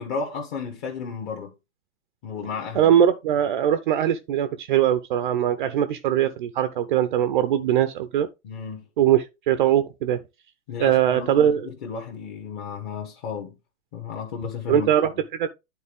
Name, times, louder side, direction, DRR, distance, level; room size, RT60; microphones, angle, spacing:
voice 1, 0.0-1.5 2.2-2.9 8.4-8.8 10.7-13.6 13.9-14.9, left 5 dB, 35° left, 1.5 m, -33 dB
voice 2, 2.7-8.3 9.0-10.2 10.8-11.7 14.7-15.5, right 10 dB, 35° right, 0.5 m, -21 dB
10.0 x 3.9 x 3.4 m
hypercardioid pair, 135°, 43 cm